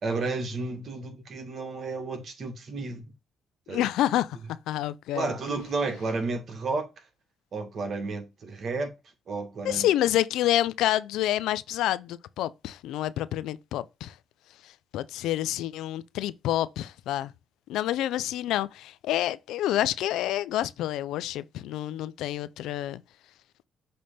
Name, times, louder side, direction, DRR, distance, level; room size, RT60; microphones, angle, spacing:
voice 1, 0.0-3.1 3.7-3.9 5.1-6.9 7.5-8.9 9.3-9.9, right 3 dB, 55° right, 2.1 m, -32 dB
voice 2, 3.7-4.4 4.7-5.3 9.6-14.1 14.6-17.3 17.7-23.0, left 13 dB, 90° left, 0.5 m, -28 dB
6.5 x 3.4 x 4.2 m
cardioid pair, 90°, 0 cm